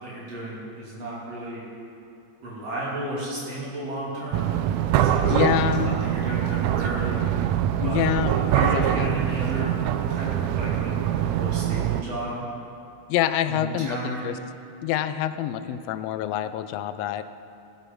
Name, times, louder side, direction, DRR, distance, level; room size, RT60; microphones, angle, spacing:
voice 1, 0.0-1.6 2.4-4.5 5.0-5.5 5.8-7.2 7.8-9.7 10.1-12.4 13.5-14.3, right 1 dB, 55° right, -7 dB, 3.9 m, -33 dB
sound 1, 4.3-12.0, right 11 dB, 80° right, 1.8 m, -24 dB
voice 2, 5.3-6.0 7.8-8.3 8.7-9.1 13.1-14.3 14.8-17.2, left 11 dB, 80° left, 11 dB, 1.6 m, -26 dB
16.5 x 8.1 x 5.4 m, 2.6 s
omnidirectional pair, 3.3 m